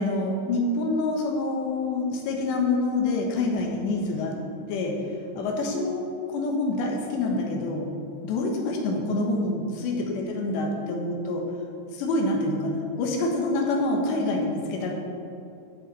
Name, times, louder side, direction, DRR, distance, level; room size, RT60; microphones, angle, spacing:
voice 1, 0.0-4.4 4.7-5.0 5.4-7.9 8.2-11.4 11.9-14.9, left 2 dB, 90° left, 1 dB, 3.4 m, -26 dB
15.0 x 6.8 x 4.2 m, 2.5 s
omnidirectional pair, 4.9 m